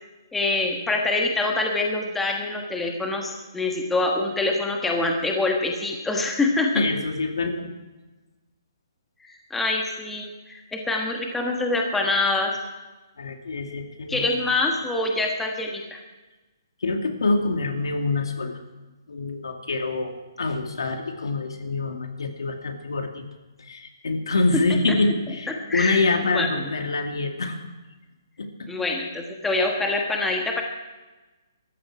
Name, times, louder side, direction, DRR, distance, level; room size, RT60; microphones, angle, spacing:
voice 1, 0.3-6.8 9.2-12.6 14.1-16.0 25.7-26.0 26.3-26.5 28.7-30.6, left 2 dB, 5° left, 1 dB, 1.4 m, -25 dB
voice 2, 6.7-7.7 13.2-14.2 16.8-18.6 19.1-23.2 23.6-27.6 28.4-28.5, left 3 dB, 80° left, 4 dB, 2.5 m, -26 dB
19.0 x 14.0 x 4.8 m, 1.2 s
hypercardioid pair, 160°, 2 cm